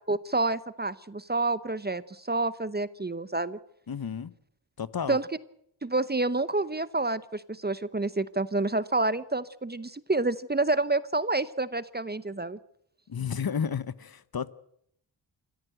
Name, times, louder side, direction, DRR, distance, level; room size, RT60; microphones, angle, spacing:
voice 1, 0.1-3.6 5.1-5.3 5.8-12.6, right 2 dB, 20° right, 0.8 m, -28 dB
voice 2, 3.9-4.3 4.8-5.2 13.1-14.5, left 7 dB, 50° left, 1.0 m, -32 dB
26.0 x 14.0 x 7.9 m
cardioid pair, 70°, 48 cm